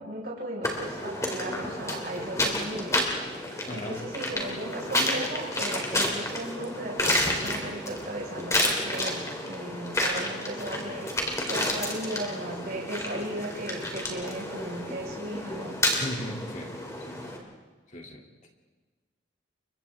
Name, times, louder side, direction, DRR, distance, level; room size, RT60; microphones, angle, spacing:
voice 1, 0.0-3.0 3.7-11.1 11.5-15.8, right 1 dB, 50° right, -4 dB, 5.2 m, -36 dB
sound 1, 0.6-17.4, left 1 dB, 15° left, 3.0 m, -30 dB
voice 2, 3.6-4.1 16.0-16.7 17.0-17.4 17.9-18.5, equal, 40° left, 1 dB, 2.8 m, -38 dB
30.0 x 24.0 x 3.6 m, 1.4 s
head